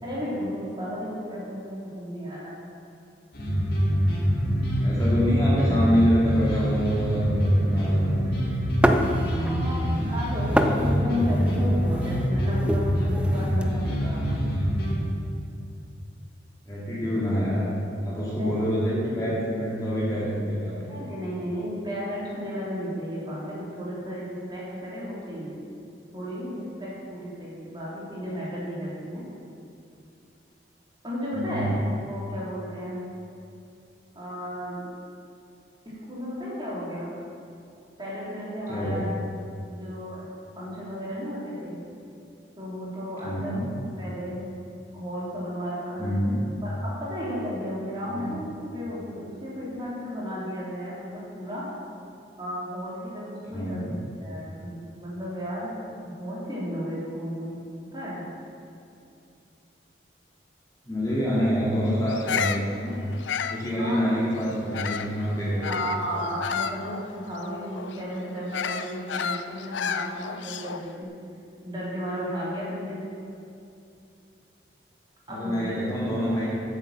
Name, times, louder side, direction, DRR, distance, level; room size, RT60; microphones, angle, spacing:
voice 1, 0.0-2.5 9.4-14.4 18.4-18.6 20.9-25.6 26.1-29.2 31.0-31.7 32.0-33.0 34.1-34.9 35.8-37.1 38.0-39.1 39.7-40.3 40.6-41.8 42.6-43.7 44.0-44.4 44.9-46.2 46.6-48.5 48.7-51.6 52.4-55.7 56.0-57.6 57.9-58.2 63.8-64.1 65.6-71.1 71.6-73.0 75.3-75.9, equal, 25° right, -7 dB, 3.2 m, -34 dB
sound 1, 3.3-15.0, equal, 55° left, 2.2 m, -25 dB
voice 2, 4.8-8.2 16.7-21.0 31.3-31.7 38.7-39.1 43.2-43.7 46.0-46.4 48.1-48.3 53.5-53.9 60.8-63.0 63.5-65.7 75.3-76.5, equal, 20° left, -8 dB, 2.1 m, -26 dB
sound 2, 8.8-9.7 10.0-13.7, equal, 5° right, 0.5 m, -27 dB
Bird vocalization bird call bird song, 62.1-65.2 65.6-70.9, left 7 dB, 85° left, 0.5 m, -32 dB
8.6 x 8.1 x 7.3 m, 2.6 s
head